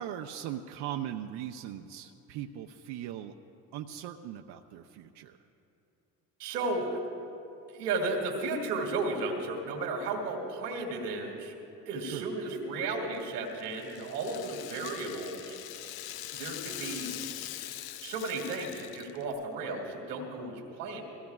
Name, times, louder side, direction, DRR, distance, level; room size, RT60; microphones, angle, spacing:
voice 1, 0.0-3.4 3.7-5.4 12.0-12.3, right 11 dB, 60° right, 4 dB, 0.7 m, -39 dB
voice 2, 6.4-7.0 7.7-11.5 11.9-15.6 16.3-17.1 18.0-21.0, right 3 dB, 85° right, 2 dB, 2.3 m, -34 dB
Rattle (instrument), 13.1-19.4, left 13 dB, 55° left, 0.6 m, -42 dB
22.5 x 16.0 x 2.4 m, 2.8 s
hypercardioid pair, 65°, 46 cm